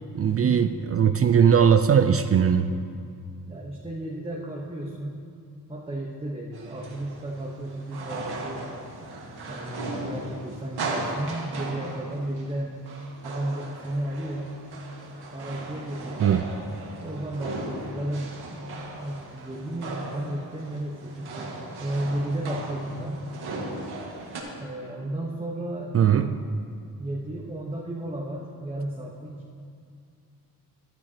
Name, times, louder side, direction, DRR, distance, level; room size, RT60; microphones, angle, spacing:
voice 1, 0.1-2.7 16.2-16.5 25.9-26.4, right 8 dB, 40° right, 9 dB, 0.4 m, -19 dB
voice 2, 3.5-5.3 5.7-8.7 9.5-12.7 13.2-14.6 15.3-16.5 17.0-18.6 18.9-21.5 21.8-23.2 24.6-25.9 27.0-29.3, right 1 dB, 15° right, -3 dB, 1.1 m, -33 dB
sound 1, 6.5-24.4, right 2 dB, 75° right, 1.8 m, -37 dB
13.5 x 11.5 x 2.9 m, 2.4 s
cardioid pair, 90°, 39 cm